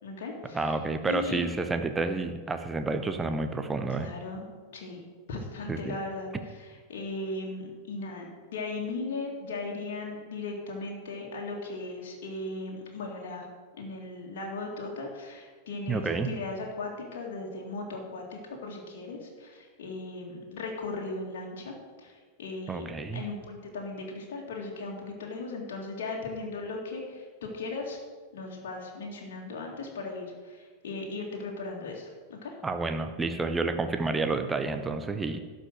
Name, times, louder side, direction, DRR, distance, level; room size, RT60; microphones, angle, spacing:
voice 1, 0.0-0.8 1.1-1.5 3.9-4.5 4.7-13.5 13.8-28.0 28.3-32.5, left 3 dB, 55° left, -1 dB, 2.0 m, -37 dB
voice 2, 0.5-4.1 5.7-6.0 15.9-16.3 22.7-23.2 32.6-35.4, right 3 dB, 15° right, 8 dB, 0.7 m, -30 dB
12.0 x 5.2 x 7.6 m, 1.5 s
figure-of-eight pair, 90°, 0 cm